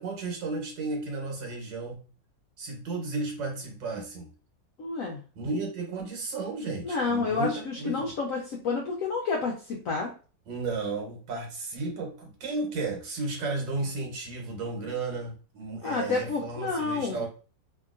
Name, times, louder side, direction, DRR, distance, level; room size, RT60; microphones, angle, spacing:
voice 1, 0.0-2.0 2.6-4.3 5.4-8.1 10.5-17.3, right 3 dB, 85° right, 0 dB, 1.6 m, -33 dB
voice 2, 4.8-5.2 6.8-10.1 15.8-17.2, left 4 dB, 80° left, 0 dB, 0.7 m, -29 dB
2.8 x 2.7 x 2.4 m, 0.37 s
omnidirectional pair, 1.9 m